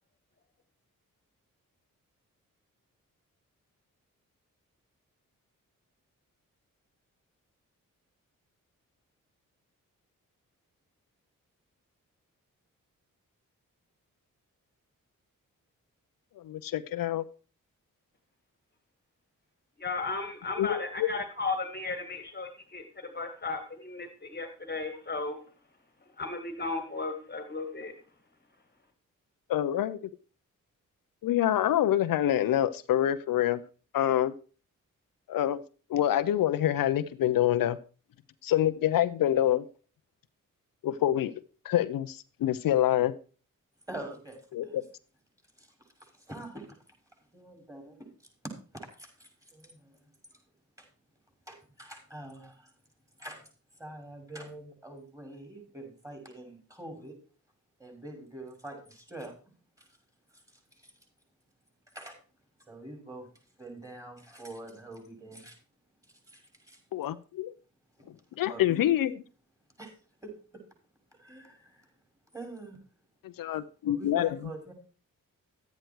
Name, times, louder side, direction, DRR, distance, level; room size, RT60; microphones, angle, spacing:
voice 1, 16.4-17.3 20.6-21.1 29.5-30.0 31.2-33.6 33.9-34.3 35.3-35.6 35.9-37.8 38.4-39.6 40.8-41.3 41.6-43.1 44.5-44.8 66.9-67.5 68.4-69.2 73.4-74.3, left 12 dB, 85° left, 12 dB, 0.6 m, -26 dB
voice 2, 19.8-25.4 26.2-28.0, left 3 dB, 30° left, 6 dB, 1.8 m, -35 dB
voice 3, 43.9-44.8 45.6-46.8 47.3-48.1 48.4-50.4 50.8-50.9 51.5-52.7 53.2-53.5 53.8-57.2 57.8-59.4 59.8-60.0 60.3-60.9 61.9-62.2 62.6-63.3 63.6-65.6 66.0-66.8 68.4-68.9 69.8-69.9 70.2-70.6 71.1-72.0 72.3-72.8 73.8-74.7, right 1 dB, 10° right, 2 dB, 6.1 m, -45 dB
12.0 x 9.2 x 4.6 m, 0.37 s
cardioid pair, 65°, 33 cm